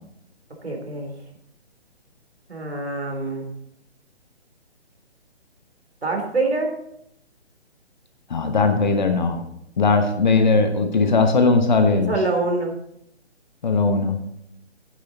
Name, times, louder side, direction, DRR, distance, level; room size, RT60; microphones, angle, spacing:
voice 1, 0.6-1.1 2.5-3.5 6.0-6.7 12.1-12.7, right 2 dB, 70° right, 2 dB, 3.4 m, -25 dB
voice 2, 8.3-9.4 9.8-12.1 13.6-14.2, left 4 dB, 40° left, 6 dB, 1.1 m, -19 dB
10.0 x 9.7 x 4.0 m, 0.75 s
figure-of-eight pair, 140°, 34 cm